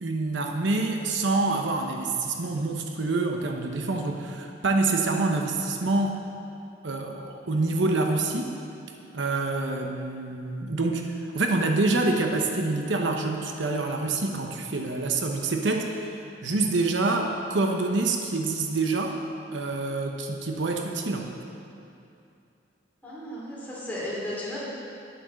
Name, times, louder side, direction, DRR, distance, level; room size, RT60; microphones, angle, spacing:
voice 1, 0.0-6.2 6.8-8.6 9.1-16.1 16.4-19.2 19.5-21.3, right 3 dB, 75° right, 2 dB, 0.9 m, -26 dB
voice 2, 23.0-24.6, left 1 dB, 10° left, -8 dB, 3.4 m, -34 dB
10.5 x 8.7 x 6.3 m, 2.6 s
head